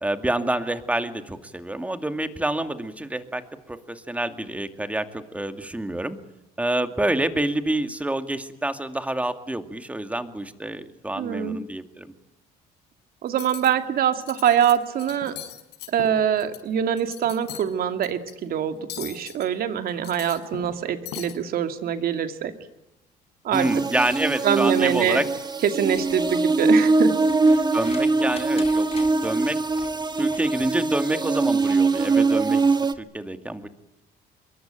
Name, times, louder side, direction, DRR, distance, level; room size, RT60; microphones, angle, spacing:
voice 1, 0.0-6.2 6.6-12.1 23.5-25.3 27.7-28.9 29.2-29.6 30.2-33.7, right 1 dB, 10° right, 8 dB, 2.3 m, -27 dB
voice 2, 11.2-11.6 13.2-15.4 15.9-22.5 23.4-23.7 24.4-25.2 25.7-27.1 27.4-27.6, right 9 dB, 60° right, 8 dB, 2.6 m, -24 dB
Cutlery silverware, 13.3-13.7 14.1-14.7 15.0-16.6 16.9-17.7 18.0-18.3 18.9-19.5 19.9-20.8 21.1-21.3, left 10 dB, 85° left, 5.6 m, -38 dB
sound 1, 23.5-32.9, right 3 dB, 25° right, 1.6 m, -22 dB
sound 2, 25.9-30.8 32.4-32.5, left 4 dB, 35° left, 7.4 m, -45 dB
26.0 x 22.5 x 9.1 m, 0.91 s
cardioid pair, 110°, 17 cm